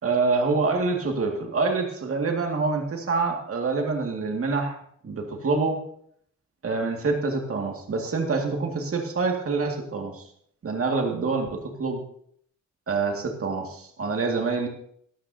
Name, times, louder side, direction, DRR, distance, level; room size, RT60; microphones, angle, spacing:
voice 1, 0.0-4.8 5.0-5.8 6.6-10.2 10.6-12.0 12.9-14.7, right 4 dB, 45° right, 2 dB, 2.2 m, -26 dB
17.0 x 13.0 x 2.8 m, 0.65 s
cardioid pair, 100°, 32 cm